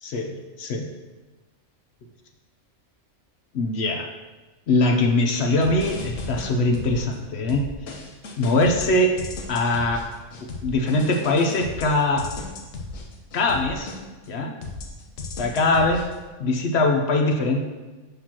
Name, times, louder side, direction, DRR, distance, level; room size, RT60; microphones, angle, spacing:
voice 1, 0.0-0.8 3.5-4.1 4.7-7.6 8.4-9.1 9.5-10.0 10.6-12.2 13.3-14.0 14.3-14.5 15.4-16.0 16.4-17.7, left 2 dB, 60° left, 3 dB, 0.8 m, -22 dB
sound 1, 5.6-7.2 7.5-14.3 14.6-16.2, left 3 dB, 80° left, 1.2 m, -35 dB
6.7 x 6.0 x 2.9 m, 1.2 s
omnidirectional pair, 1.3 m